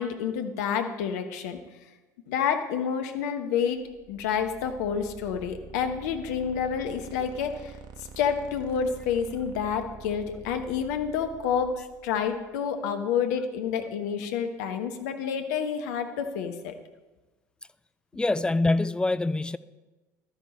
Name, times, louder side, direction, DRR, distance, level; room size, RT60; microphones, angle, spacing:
voice 1, 0.0-1.6 2.3-3.8 4.1-7.7 8.2-16.7, left 7 dB, 65° left, 1.1 m, -29 dB
sound 1, 3.7-12.6, right 6 dB, 50° right, 1.2 m, -47 dB
voice 2, 18.1-19.6, left 2 dB, 10° left, 0.4 m, -25 dB
12.0 x 10.0 x 4.3 m
figure-of-eight pair, 65°, 10 cm